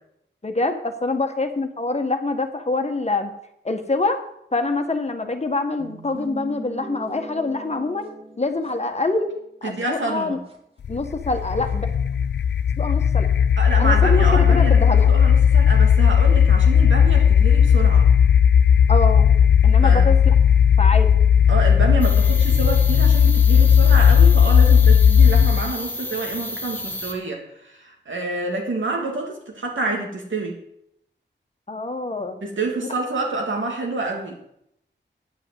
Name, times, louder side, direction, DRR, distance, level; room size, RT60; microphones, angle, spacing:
voice 1, 0.4-3.3 3.6-4.2 4.5-8.1 8.4-9.3 9.6-10.4 10.9-11.9 12.8-13.3 13.8-15.1 18.9-19.3 19.6-20.3 20.8-21.1 31.7-32.4 32.8-32.9, left 2 dB, 35° left, 6 dB, 1.5 m, -25 dB
sound 1, 5.8-9.4 9.8-9.9 10.5-10.6 11.3-11.7, right 1 dB, 30° right, 2.5 m, -40 dB
voice 2, 9.6-10.4 13.6-18.1 19.8-20.1 21.5-30.5 32.4-34.4, right 3 dB, 85° right, 0 dB, 2.9 m, -28 dB
sound 2, 10.8-25.7, left 8 dB, 65° left, 0.4 m, -15 dB
sound 3, 22.0-27.1, left 1 dB, 10° left, 1.6 m, -32 dB
9.3 x 7.8 x 8.1 m, 0.76 s
wide cardioid pair, 65°, 19 cm